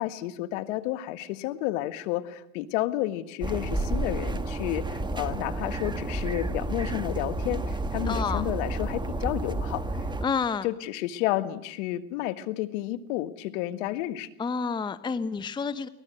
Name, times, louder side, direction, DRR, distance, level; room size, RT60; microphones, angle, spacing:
voice 1, 0.0-9.8 10.6-14.3, left 15 dB, 60° left, 12 dB, 1.7 m, -31 dB
sound 1, 3.4-10.2, right 2 dB, 10° right, 1.4 m, -31 dB
voice 2, 8.1-8.5 10.2-10.7 14.4-15.9, left 5 dB, 10° left, 14 dB, 0.8 m, -29 dB
24.0 x 18.5 x 7.9 m, 0.76 s
hypercardioid pair, 105°, 42 cm